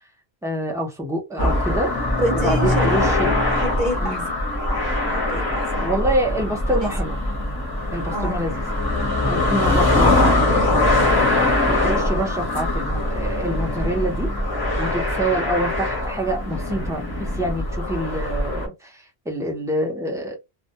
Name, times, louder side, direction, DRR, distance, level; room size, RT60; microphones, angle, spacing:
voice 1, 0.4-1.9 2.3-3.4 4.0-4.2 5.8-7.2 7.9-8.6 9.3-11.0 11.7-14.3 14.8-20.3, right 1 dB, 5° right, 0.3 m, -26 dB
sound 1, 1.4-18.7, left 2 dB, 25° left, 0.7 m, -22 dB
voice 2, 2.2-3.1 3.5-4.2 5.1-6.1 6.8-6.9 8.1-8.4, right 1 dB, 50° right, 0.8 m, -27 dB
2.1 x 2.1 x 2.7 m
omnidirectional pair, 1.1 m